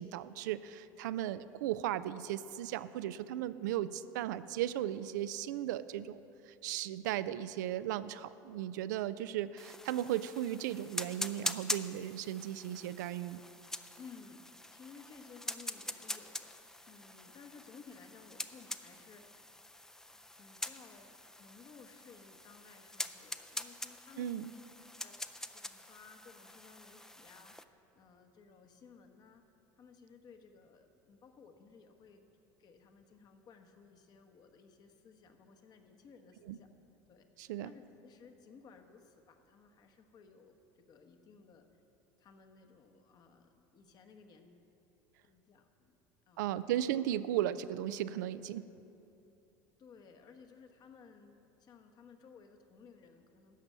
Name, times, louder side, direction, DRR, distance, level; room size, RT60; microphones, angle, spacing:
voice 1, 0.0-6.2 6.5-13.4 24.2-24.5 36.5-36.6 37.4-37.7 46.4-48.7, right 12 dB, 90° right, 14 dB, 0.4 m, -36 dB
sound 1, 9.6-27.6, left 1 dB, 5° left, 0.4 m, -44 dB
voice 2, 14.0-19.3 20.1-24.6 25.0-29.4 29.8-32.2 32.6-36.7 37.1-41.6 42.2-44.6 45.2-45.9 46.3-46.5 49.8-53.6, left 5 dB, 45° left, 6 dB, 1.1 m, -57 dB
13.0 x 5.4 x 8.2 m, 2.9 s
supercardioid pair, 105°, 10 cm